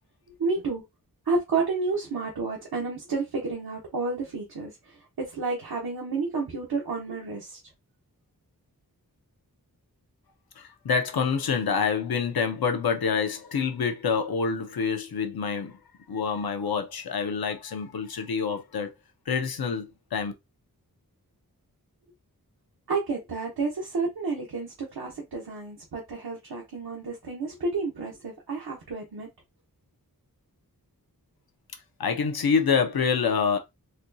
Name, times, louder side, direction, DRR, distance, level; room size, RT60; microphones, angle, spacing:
voice 1, 0.4-0.8 1.2-7.6 22.9-29.3, right 4 dB, 90° right, 1.0 m, -30 dB
voice 2, 10.6-15.8 16.1-18.9 19.3-20.3 32.0-33.6, left 6 dB, 85° left, 0.7 m, -27 dB
4.2 x 2.2 x 2.7 m
wide cardioid pair, 85°, 36 cm